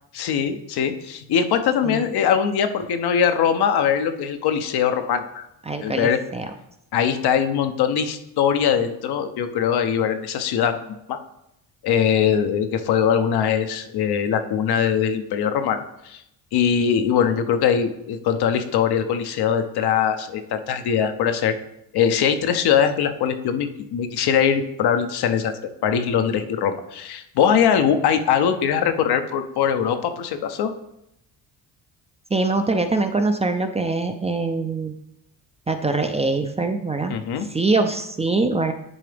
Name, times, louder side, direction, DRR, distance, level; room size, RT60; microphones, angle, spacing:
voice 1, 0.1-5.5 5.8-6.2 6.9-10.8 11.1-11.2 11.8-16.2 16.5-21.5 21.9-25.5 25.8-30.7 37.1-37.5, left 8 dB, 70° left, 8 dB, 0.8 m, -21 dB
voice 2, 5.7-6.5 32.3-35.0 35.7-37.2 37.5-38.7, right 3 dB, 15° right, 6 dB, 0.4 m, -23 dB
10.0 x 3.8 x 3.4 m, 0.80 s
cardioid pair, 100°, 40 cm